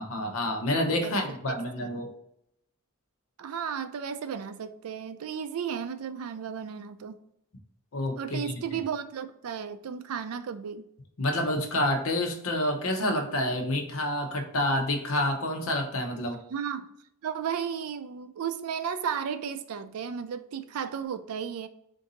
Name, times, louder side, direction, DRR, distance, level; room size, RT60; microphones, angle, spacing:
voice 1, 0.0-2.1 7.9-8.4 11.2-16.4, left 1 dB, 70° left, 4 dB, 0.7 m, -28 dB
voice 2, 1.0-2.0 3.4-7.2 8.2-10.8 16.5-16.9 17.2-21.7, right 7 dB, 80° right, 11 dB, 0.4 m, -34 dB
3.8 x 2.6 x 3.9 m, 0.76 s
head